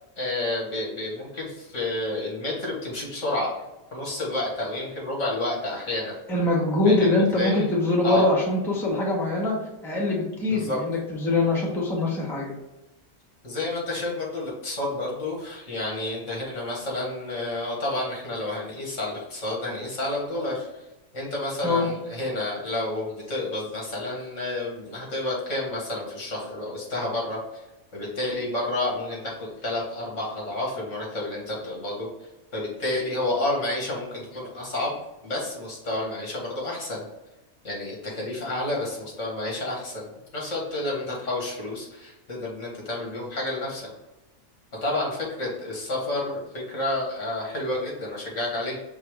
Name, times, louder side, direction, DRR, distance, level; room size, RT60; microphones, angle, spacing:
voice 1, 0.2-3.5 3.9-6.1 6.8-7.7 8.0-8.3 10.4-10.8 13.4-20.7 21.1-27.4 27.9-32.1 32.5-35.0 35.2-37.0 37.6-43.9 44.8-46.4 46.7-48.8, left 2 dB, 70° left, -3 dB, 1.8 m, -30 dB
voice 2, 6.3-9.6 9.8-12.5 21.6-21.9, left 2 dB, ahead, -3 dB, 0.8 m, -23 dB
5.4 x 2.1 x 4.7 m, 1.0 s
omnidirectional pair, 1.3 m